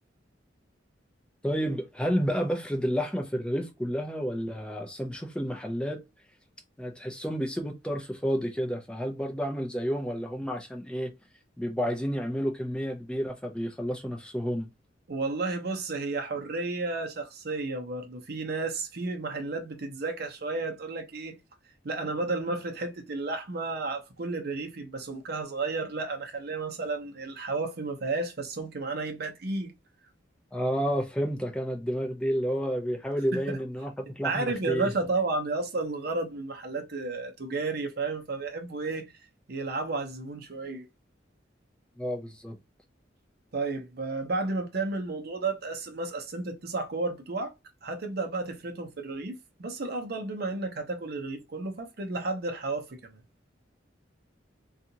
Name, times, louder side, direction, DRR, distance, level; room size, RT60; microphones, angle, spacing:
voice 1, 1.4-6.0 6.8-11.1 11.6-14.7 30.5-34.9 42.0-42.6, equal, 5° left, 0.5 m, -30 dB
voice 2, 15.1-21.3 21.8-29.7 33.3-33.6 34.2-39.1 39.5-40.9 43.5-47.5 47.8-53.2, right 3 dB, 60° right, 0.7 m, -32 dB
2.7 x 2.4 x 2.7 m
head